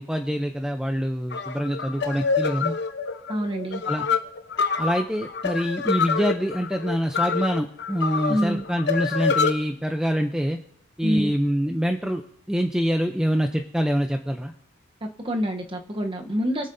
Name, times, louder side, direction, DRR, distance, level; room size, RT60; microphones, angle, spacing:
voice 1, 0.0-2.7 3.8-4.1 4.8-10.6 11.0-12.2 12.5-14.5, equal, 5° right, 4 dB, 0.5 m, -25 dB
sound 1, 1.3-9.5, left 5 dB, 55° left, 0.8 m, -26 dB
voice 2, 3.3-3.8 8.3-8.6 11.0-11.3 15.0-16.7, equal, 25° right, 4 dB, 0.9 m, -26 dB
23.5 x 8.0 x 2.7 m, 0.63 s
head